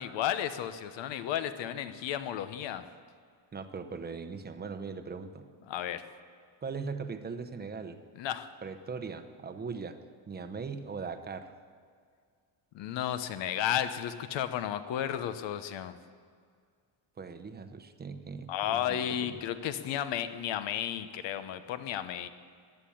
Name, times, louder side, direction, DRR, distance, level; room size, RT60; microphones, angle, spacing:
voice 1, 0.0-2.8 5.7-6.0 8.2-8.5 12.7-16.0 18.5-22.3, left 10 dB, 70° left, 11 dB, 1.1 m, -33 dB
voice 2, 3.5-5.4 6.6-8.0 8.6-10.0 10.3-11.5 17.2-19.4, right 5 dB, 20° right, 8 dB, 0.9 m, -40 dB
16.0 x 10.5 x 8.7 m, 2.1 s
cardioid pair, 155°, 46 cm